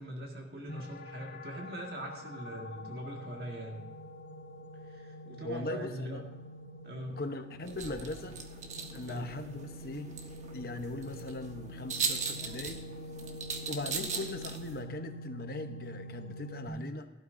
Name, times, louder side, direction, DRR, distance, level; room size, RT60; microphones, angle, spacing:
voice 1, 0.0-3.8 4.8-6.2 6.8-7.2 9.1-9.3, right 1 dB, 60° right, 0 dB, 1.8 m, -42 dB
sound 1, 0.7-16.7, left 1 dB, 85° left, 1.4 m, -46 dB
voice 2, 5.4-6.2 7.1-8.4 8.9-10.1 10.5-12.8 13.7-17.1, left 2 dB, 55° left, 7 dB, 1.0 m, -39 dB
sound 2, 7.6-14.8, right 5 dB, 40° right, 1.3 m, -39 dB
17.0 x 12.0 x 2.7 m, 1.1 s
head